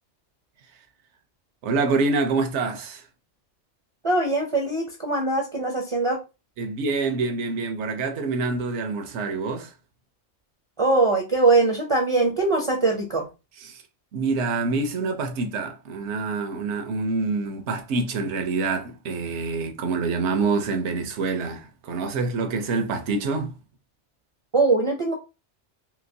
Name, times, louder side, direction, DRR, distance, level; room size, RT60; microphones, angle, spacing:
voice 1, 1.6-3.0 6.6-9.7 13.6-13.8 14.1-23.6, right 3 dB, 80° right, 1.0 m, -26 dB
voice 2, 4.0-6.2 10.8-13.3 24.5-25.1, right 3 dB, 40° right, 0.5 m, -22 dB
3.0 x 2.9 x 2.6 m
omnidirectional pair, 1.2 m